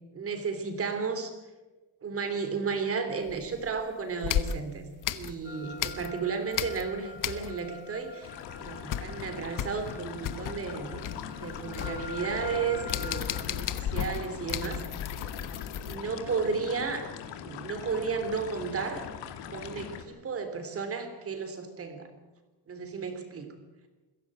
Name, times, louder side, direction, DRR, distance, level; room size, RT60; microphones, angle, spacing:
voice 1, 0.1-1.3 2.0-4.8 5.1-11.1 11.4-14.8 15.8-17.1 17.4-19.1 19.5-22.1 22.7-23.5, right 5 dB, 30° right, 8 dB, 3.3 m, -33 dB
sound 1, 3.3-3.8 4.2-6.3 6.5-7.8 8.1-8.2 8.5-16.0, left 10 dB, 45° left, 1.1 m, -34 dB
sound 2, 5.4-13.4, left 4 dB, 25° left, 2.6 m, -44 dB
sound 3, 8.2-20.0, left 8 dB, 75° left, 2.5 m, -41 dB
22.0 x 16.0 x 9.0 m, 1.2 s
cardioid pair, 165°, 43 cm